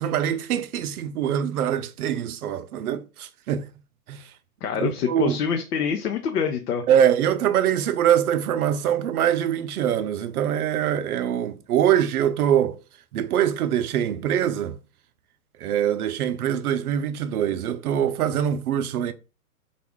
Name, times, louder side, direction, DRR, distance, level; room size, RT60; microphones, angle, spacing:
voice 1, 0.0-3.7 4.1-4.3 4.8-5.4 6.9-12.8 13.1-14.8 15.6-19.1, right 10 dB, 75° right, 0.6 m, -23 dB
voice 2, 4.6-6.8, left 7 dB, 85° left, 0.7 m, -26 dB
3.6 x 2.4 x 3.5 m
hypercardioid pair, 150°, 45 cm